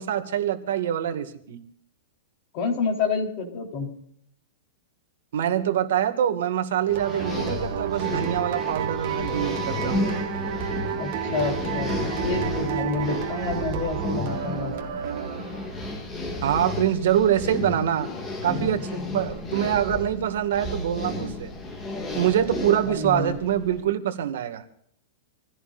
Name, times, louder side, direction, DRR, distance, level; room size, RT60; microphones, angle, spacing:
voice 1, 0.0-1.6 5.3-10.1 16.4-18.1 18.4-21.5 22.1-24.6, right 10 dB, 65° right, 7 dB, 2.0 m, -25 dB
voice 2, 2.5-3.9 11.0-11.9 12.2-14.7 22.9-23.4, left 4 dB, 35° left, 2 dB, 3.8 m, -28 dB
sound 1, 6.9-23.8, left 2 dB, 15° left, 2.1 m, -32 dB
sound 2, 7.0-15.9, right 9 dB, 45° right, 2.0 m, -31 dB
27.0 x 16.5 x 2.6 m, 0.69 s
supercardioid pair, 170°, 0 cm